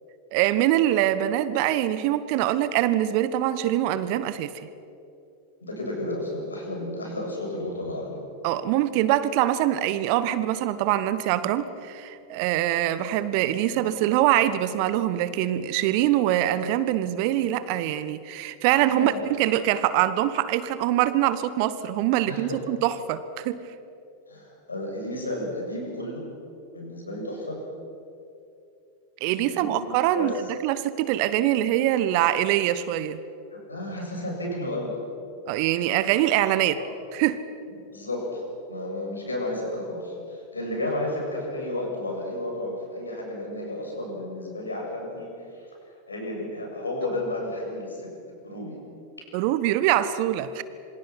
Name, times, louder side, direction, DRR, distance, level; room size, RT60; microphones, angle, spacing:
voice 1, 0.3-4.5 8.4-23.6 29.2-30.4 30.6-33.2 35.5-36.8 37.1-37.4 49.3-50.6, right 13 dB, 45° right, 14 dB, 1.2 m, -24 dB
voice 2, 5.6-8.2 18.9-19.2 22.3-22.6 24.3-26.3 26.7-27.6 29.3-29.8 30.1-30.3 33.5-34.9 36.8-36.9 37.9-38.4 38.7-45.3 46.1-48.1 48.4-48.8, left 1 dB, 75° left, -1 dB, 7.7 m, -32 dB
27.5 x 25.0 x 6.1 m, 2.6 s
figure-of-eight pair, 90°, 0 cm